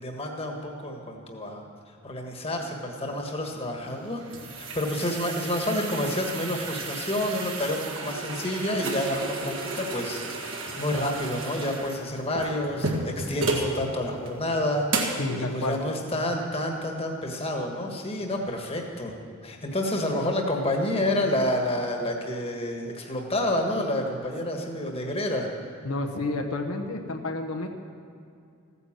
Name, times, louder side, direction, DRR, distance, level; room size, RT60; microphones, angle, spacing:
voice 1, 0.0-1.6 2.0-4.2 4.5-14.9 15.4-19.1 19.4-25.5, left 1 dB, 25° left, 2 dB, 1.5 m, -29 dB
sound 1, 3.9-13.7 14.2-14.3 14.9-15.3, right 2 dB, 60° right, 1.9 m, -33 dB
voice 2, 15.2-15.8 25.8-27.7, left 2 dB, 80° left, 4 dB, 1.1 m, -30 dB
15.0 x 9.7 x 7.4 m, 2.4 s
head